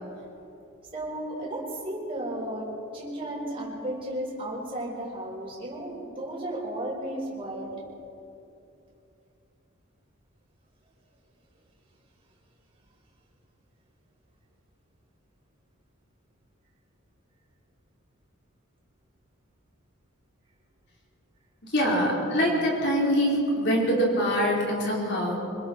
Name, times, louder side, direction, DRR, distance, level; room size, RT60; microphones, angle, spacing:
voice 1, 0.9-2.7 2.9-7.7, right 1 dB, 25° right, -5 dB, 5.4 m, -34 dB
voice 2, 21.6-25.4, equal, 50° left, -3 dB, 5.1 m, -24 dB
26.0 x 21.0 x 4.9 m, 2.8 s
head